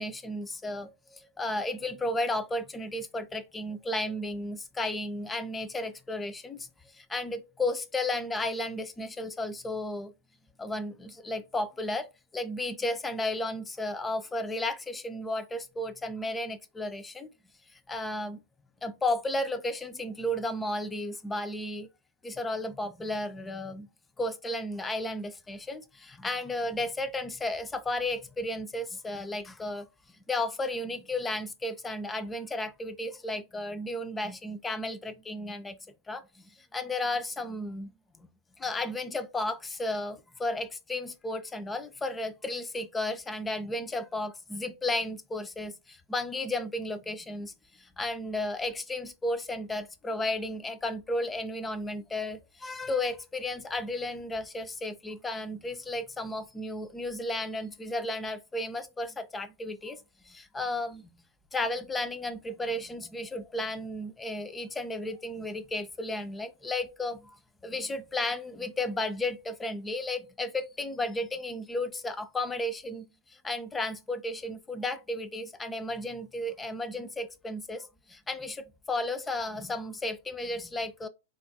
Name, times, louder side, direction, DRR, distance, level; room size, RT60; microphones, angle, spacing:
voice 1, 0.0-6.7 6.9-10.1 10.6-12.1 12.3-17.3 17.7-18.4 18.8-21.9 22.2-23.9 24.2-29.9 30.3-35.8 36.1-37.9 38.6-61.1 61.5-67.4 67.6-81.1, left 2 dB, 15° left, 0.4 m, -33 dB
3.9 x 2.3 x 2.6 m
hypercardioid pair, 110°, 0 cm